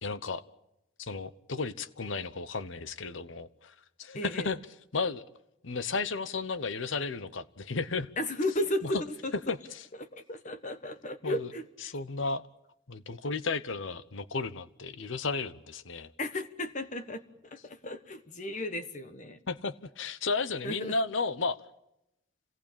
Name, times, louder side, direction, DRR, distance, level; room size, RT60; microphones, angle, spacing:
voice 1, 0.0-0.4 1.0-4.6 4.9-5.2 5.6-8.1 8.8-8.9 9.5-9.6 11.2-11.5 11.8-12.4 12.9-16.1 19.5-21.6, left 4 dB, 80° left, 14 dB, 1.0 m, -33 dB
voice 2, 4.1-4.5 8.2-9.3 10.0-11.9 16.2-19.4 20.6-21.0, left 1 dB, 40° left, 9 dB, 1.2 m, -34 dB
27.5 x 18.0 x 8.8 m, 0.87 s
head